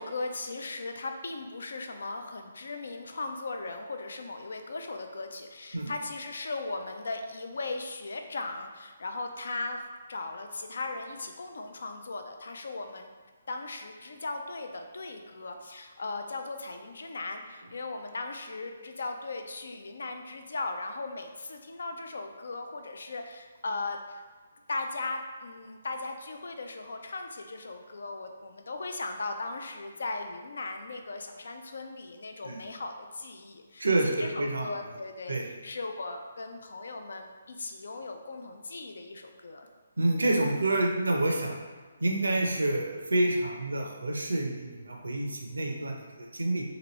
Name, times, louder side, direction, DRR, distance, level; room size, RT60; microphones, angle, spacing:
voice 1, 0.0-13.1 13.5-24.2 24.7-39.7, left 3 dB, 70° left, 5 dB, 0.4 m, -38 dB
voice 2, 33.8-34.7 35.3-35.5 40.0-41.6 42.0-46.6, right 2 dB, 85° right, 1 dB, 0.5 m, -28 dB
2.9 x 2.6 x 3.0 m, 1.5 s
figure-of-eight pair, 145°, 0 cm